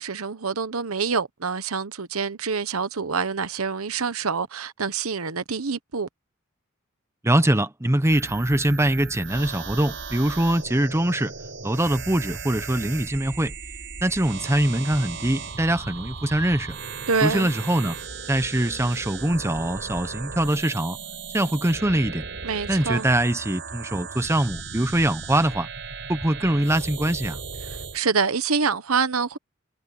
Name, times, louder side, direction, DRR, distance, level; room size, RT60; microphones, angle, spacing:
voice 1, 0.0-6.1 17.1-17.5 22.4-23.1 27.9-29.4, right 5 dB, 85° right, 1.1 m, -26 dB
voice 2, 7.2-11.3 11.6-13.5 14.0-16.8 17.2-18.0 18.3-21.0 21.3-22.3 22.7-25.7 26.1-27.4, right 1 dB, 15° right, 0.9 m, -23 dB
sound 1, 8.0-28.0, right 5 dB, 60° right, 4.6 m, -36 dB
sound 2, 14.3-19.5, left 1 dB, 30° left, 7.4 m, -48 dB
head